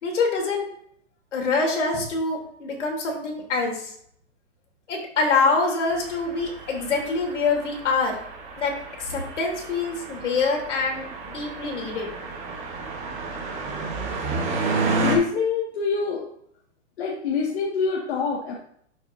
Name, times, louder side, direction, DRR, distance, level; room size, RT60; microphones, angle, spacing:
voice 1, 0.0-0.7 1.3-3.9 4.9-8.2 8.6-12.1, left 4 dB, 80° left, 1 dB, 3.1 m, -25 dB
sound 1, 5.9-15.2, right 3 dB, 20° right, 1.3 m, -31 dB
voice 2, 15.0-16.3 17.0-18.5, left 5 dB, 60° left, -3 dB, 1.7 m, -25 dB
11.5 x 6.0 x 2.6 m, 0.66 s
hypercardioid pair, 160°, 36 cm